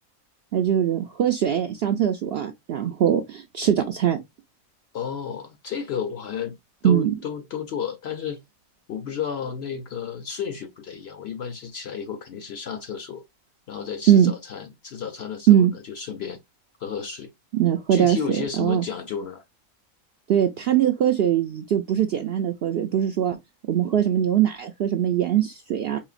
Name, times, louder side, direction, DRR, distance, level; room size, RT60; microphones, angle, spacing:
voice 1, 0.5-4.2 6.8-7.1 14.1-14.3 15.5-15.7 17.5-18.8 20.3-23.4 23.7-26.0, right 10 dB, 70° right, 0.6 m, -21 dB
voice 2, 4.9-6.6 6.8-8.4 8.9-13.2 13.7-16.4 16.8-17.3 17.9-19.4, left 7 dB, 65° left, 0.7 m, -32 dB
4.8 x 2.9 x 2.4 m
omnidirectional pair, 1.5 m